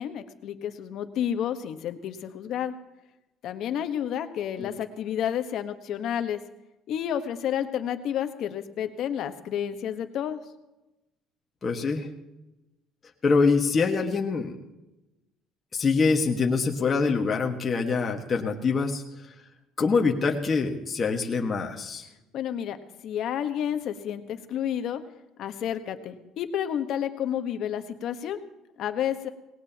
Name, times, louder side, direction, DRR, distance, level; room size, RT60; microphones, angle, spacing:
voice 1, 0.0-2.7 3.4-6.4 6.9-10.4 22.3-22.8 23.0-25.0 25.4-28.4 28.8-29.3, left 9 dB, 60° left, 8 dB, 1.3 m, -30 dB
voice 2, 11.6-12.1 13.2-14.5 15.7-19.0 19.8-22.0, left 4 dB, 30° left, 1 dB, 1.6 m, -24 dB
19.5 x 18.0 x 3.0 m, 0.97 s
cardioid pair, 120°, 0 cm